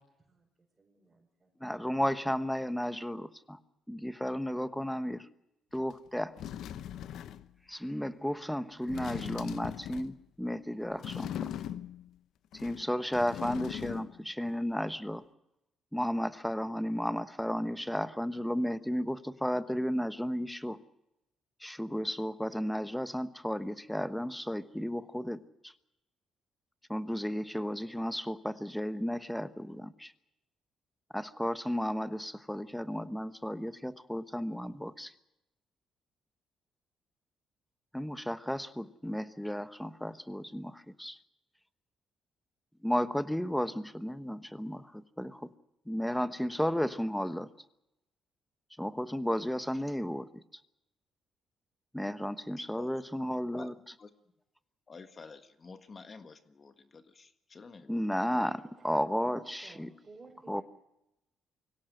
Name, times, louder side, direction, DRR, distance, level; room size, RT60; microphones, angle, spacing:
voice 1, 0.8-1.5 58.1-60.6, right 3 dB, 30° right, -2 dB, 5.4 m, -55 dB
voice 2, 1.6-3.6 3.9-5.3 5.7-6.4 7.7-11.5 12.5-15.2 15.9-20.8 21.6-25.7 26.9-30.1 31.1-35.1 37.9-41.2 42.8-45.5 45.9-47.5 48.8-50.4 51.9-53.7 57.9-59.9 60.5-60.6, equal, 5° left, 11 dB, 1.1 m, -33 dB
sound 1, 5.9-6.0 6.4-7.5 8.8-10.2 11.0-12.1 12.5-14.2 14.5-14.6, left 10 dB, 75° left, 0.8 m, -40 dB
voice 3, 52.6-53.0 53.5-53.7 54.0-54.1 54.9-58.1, left 4 dB, 40° left, 7 dB, 1.6 m, -50 dB
24.5 x 17.0 x 7.8 m, 0.89 s
cardioid pair, 90°, 0 cm